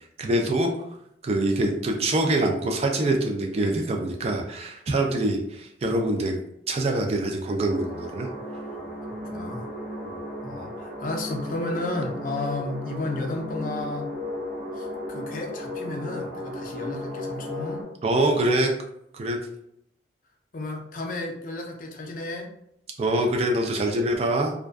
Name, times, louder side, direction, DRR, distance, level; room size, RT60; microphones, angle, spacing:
voice 1, 0.2-0.7 1.2-6.4 6.7-8.3 10.1-10.2 18.0-18.7 19.1-19.4 23.0-24.5, right 1 dB, 35° right, 2 dB, 0.4 m, -24 dB
sound 1, 7.7-17.8, left 1 dB, 55° right, 1.1 m, -35 dB
voice 2, 8.7-9.7 10.4-14.1 14.7-17.8 20.5-22.5, left 2 dB, 45° left, 1 dB, 0.4 m, -33 dB
2.5 x 2.2 x 2.3 m, 0.75 s
head